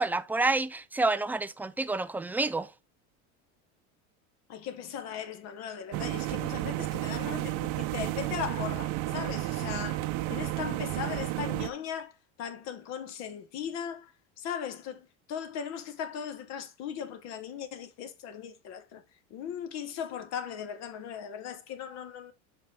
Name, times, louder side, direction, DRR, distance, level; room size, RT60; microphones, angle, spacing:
voice 1, 0.0-2.7, right 3 dB, 5° right, 0.4 m, -28 dB
voice 2, 4.5-12.1 12.4-14.1 14.4-19.0 19.3-22.3, left 8 dB, 55° left, 1.5 m, -38 dB
sound 1, 5.9-11.7, right 16 dB, 65° right, 0.9 m, -32 dB
7.5 x 5.5 x 3.3 m
supercardioid pair, 130°, 33 cm